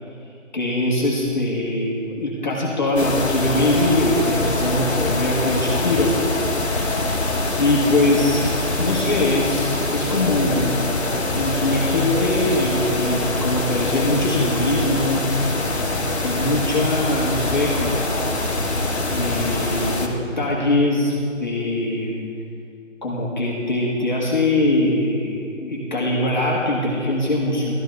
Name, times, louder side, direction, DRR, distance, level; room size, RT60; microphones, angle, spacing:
voice 1, 0.5-6.2 6.6-7.0 7.6-10.9 11.3-15.3 15.7-15.8 16.2-18.3 19.1-22.2 23.0-27.8, left 1 dB, 35° left, -5 dB, 1.5 m, -22 dB
sound 1, 3.0-20.1, left 2 dB, 55° left, 1.5 m, -24 dB
13.0 x 11.5 x 3.4 m, 2.5 s
figure-of-eight pair, 175°, 39 cm